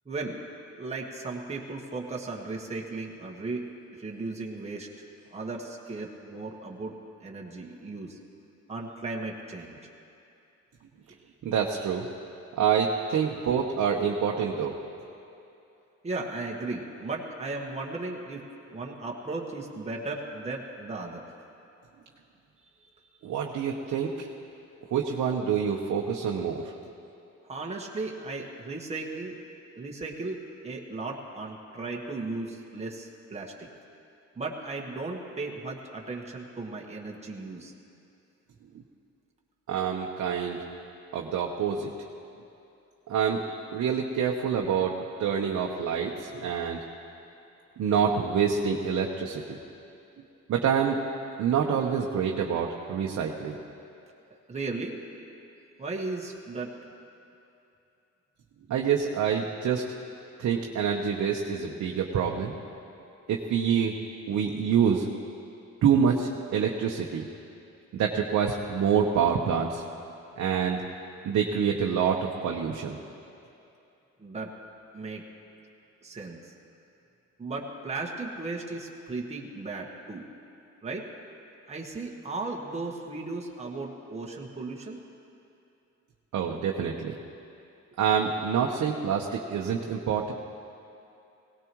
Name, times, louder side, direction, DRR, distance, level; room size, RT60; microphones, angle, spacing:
voice 1, 0.0-0.4 0.8-3.7 4.0-5.0 5.3-8.2 8.7-9.9 16.0-18.4 18.7-21.2 27.5-29.4 29.8-33.7 34.3-37.7 46.3-46.4 54.5-55.0 55.8-56.8 74.2-74.5 74.9-75.2 76.0-76.5 77.4-80.3 80.8-81.0 81.7-85.1, right 3 dB, 20° right, -2 dB, 1.5 m, -36 dB
voice 2, 11.4-12.1 12.6-14.8 23.2-24.3 24.9-26.7 39.7-40.6 41.1-41.9 43.1-43.4 43.7-46.8 47.8-49.6 50.5-51.0 51.4-53.6 58.7-59.8 60.4-62.5 63.3-63.9 64.3-65.1 65.8-67.3 67.9-69.8 70.4-70.8 71.2-73.0 86.3-87.2 88.0-90.3, right 7 dB, 65° right, 0 dB, 1.0 m, -26 dB
18.0 x 17.5 x 3.1 m, 2.7 s
cardioid pair, 90°, 30 cm